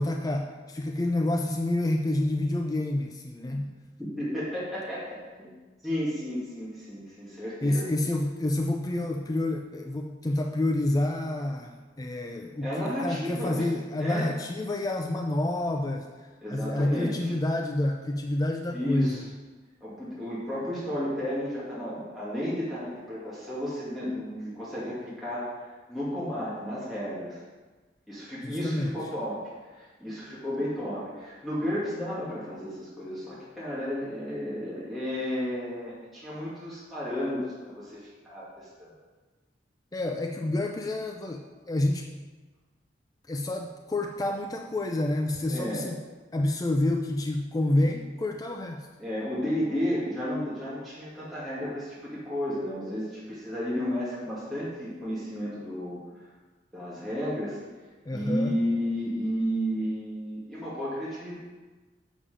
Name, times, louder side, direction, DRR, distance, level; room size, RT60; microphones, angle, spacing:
voice 1, 0.0-3.7 7.6-16.1 16.5-19.3 28.4-28.9 39.9-42.1 43.3-46.0 46.3-48.9 58.1-58.6, left 1 dB, 20° left, 2 dB, 0.4 m, -28 dB
voice 2, 4.0-5.5 5.8-7.8 12.6-13.6 14.0-14.3 16.4-17.3 18.7-19.3 19.8-27.4 28.1-29.4 29.8-38.9 45.5-45.9 49.0-56.0 56.7-57.6 58.1-61.4, equal, ahead, -10 dB, 2.0 m, -32 dB
7.2 x 6.9 x 4.9 m, 1.3 s
head